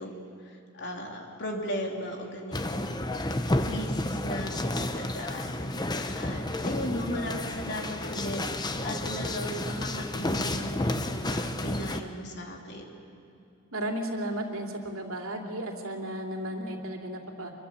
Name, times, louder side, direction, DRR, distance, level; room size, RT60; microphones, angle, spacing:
voice 1, 0.0-2.9 3.6-13.0, equal, 55° left, 1 dB, 3.2 m, -37 dB
sound 1, 2.5-12.0, left 1 dB, 20° left, 0.9 m, -31 dB
voice 2, 13.7-17.5, right 1 dB, 85° right, 2 dB, 3.1 m, -34 dB
25.5 x 23.0 x 7.2 m, 2.7 s
head